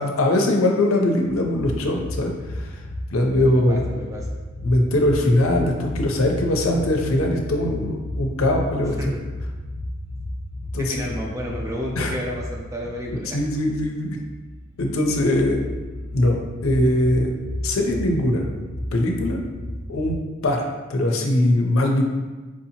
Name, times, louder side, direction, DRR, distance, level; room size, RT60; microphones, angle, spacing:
voice 1, 0.0-2.8 3.1-3.8 4.6-8.9 10.7-10.9 12.0-12.1 13.3-14.2 14.8-15.6 16.1-17.3 17.6-18.5 18.9-19.4 19.9-20.6 20.9-22.0, left 1 dB, 80° left, 2 dB, 0.6 m, -21 dB
sound 1, 1.3-20.2, left 1 dB, 60° right, 1.0 m, -33 dB
voice 2, 3.5-4.3 9.0-9.1 10.8-13.4, equal, 15° right, -2 dB, 0.5 m, -31 dB
4.7 x 2.7 x 2.8 m, 1.3 s
head